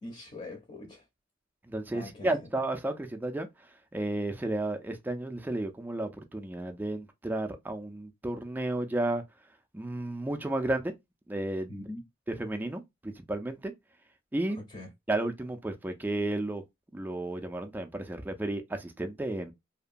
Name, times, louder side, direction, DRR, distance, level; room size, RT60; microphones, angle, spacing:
voice 1, 0.0-1.1 1.9-2.5 11.7-12.0 14.7-14.9, left 2 dB, 30° left, 0.6 m, -43 dB
voice 2, 1.7-3.5 3.9-9.2 9.7-10.9 11.3-11.7 12.4-13.7 14.3-14.6 15.1-16.6 16.9-19.5, right 2 dB, 10° right, 0.3 m, -32 dB
2.8 x 2.2 x 2.5 m
head